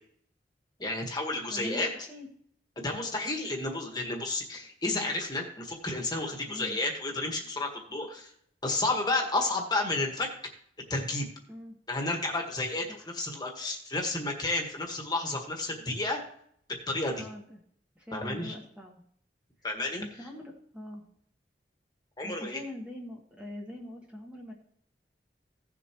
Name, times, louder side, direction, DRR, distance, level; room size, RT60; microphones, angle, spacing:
voice 1, 0.8-1.9 2.8-8.3 8.6-10.3 10.9-11.3 11.9-16.2 16.7-17.3 18.1-18.5 19.6-20.0 22.2-22.6, left 2 dB, 25° left, 2 dB, 1.6 m, -31 dB
voice 2, 1.5-2.3 6.5-6.8 11.5-11.7 13.0-13.1 17.1-17.6 17.9-19.0 20.0-21.0 22.2-24.5, left 1 dB, 5° right, -1 dB, 1.5 m, -43 dB
16.5 x 7.0 x 3.1 m, 0.64 s
head